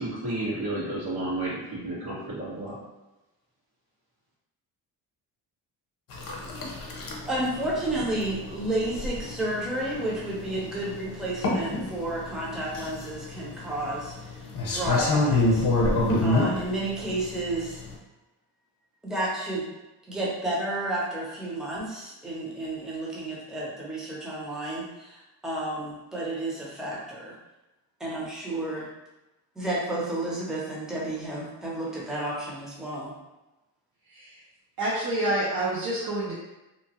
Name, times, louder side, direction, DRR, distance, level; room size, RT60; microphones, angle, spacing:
voice 1, 0.0-2.8, right 2 dB, 90° right, -8 dB, 1.4 m, -31 dB
sound 1, 6.1-17.9, left 2 dB, 55° left, 0.8 m, -28 dB
voice 2, 7.3-14.3 14.6-15.7 16.2-17.8 19.0-19.7 20.1-27.3 28.0-28.9 29.6-33.1, right 1 dB, ahead, -5 dB, 0.6 m, -31 dB
voice 3, 34.1-34.4 34.8-36.3, right 1 dB, 60° right, -7 dB, 0.7 m, -28 dB
2.9 x 2.2 x 2.9 m, 1.0 s
cardioid pair, 120°, 38 cm